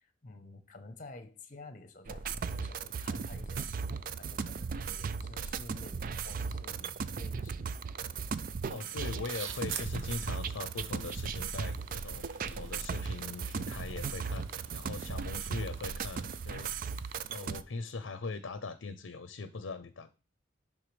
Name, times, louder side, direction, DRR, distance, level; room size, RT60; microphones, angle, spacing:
voice 1, 0.0-8.0, left 2 dB, 40° left, 0.9 m, -51 dB
sound 1, 2.1-17.6, right 5 dB, 45° right, 0.3 m, -37 dB
sound 2, 8.6-17.5, right 6 dB, 85° right, 0.9 m, -49 dB
voice 2, 8.7-16.7 17.3-20.1, left 3 dB, 75° left, 0.6 m, -41 dB
11.0 x 3.7 x 3.2 m
head